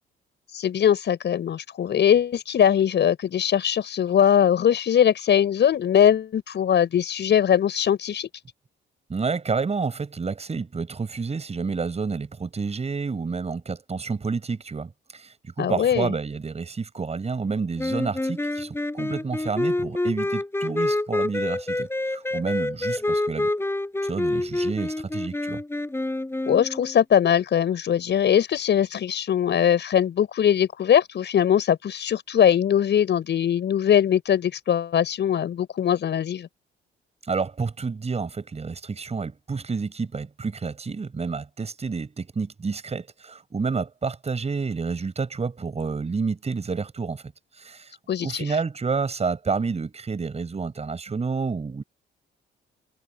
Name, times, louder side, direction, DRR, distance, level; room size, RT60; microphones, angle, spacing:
voice 1, 0.5-8.3 15.6-16.1 26.5-36.5 48.1-48.5, left 9 dB, 60° left, 6.2 m, -21 dB
voice 2, 9.1-23.5 24.0-25.6 37.2-47.2 47.6-51.8, right 4 dB, 30° right, 5.9 m, -29 dB
sound 1, 17.8-27.0, left 2 dB, 10° left, 6.5 m, -27 dB
cardioid pair, 90°, 20 cm